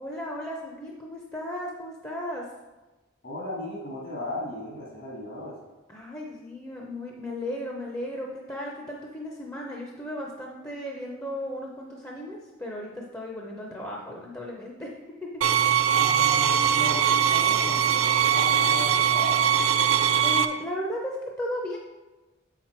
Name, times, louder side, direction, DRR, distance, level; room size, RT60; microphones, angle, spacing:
voice 1, 0.0-2.5 5.9-14.9 15.2-15.3 20.2-21.8, left 1 dB, 15° left, -1 dB, 0.6 m, -35 dB
voice 2, 3.2-5.6 15.9-19.5, left 1 dB, 65° left, -4 dB, 1.8 m, -36 dB
sound 1, 15.4-20.5, right 9 dB, 85° right, 0.4 m, -21 dB
7.1 x 5.8 x 4.4 m, 1.1 s
head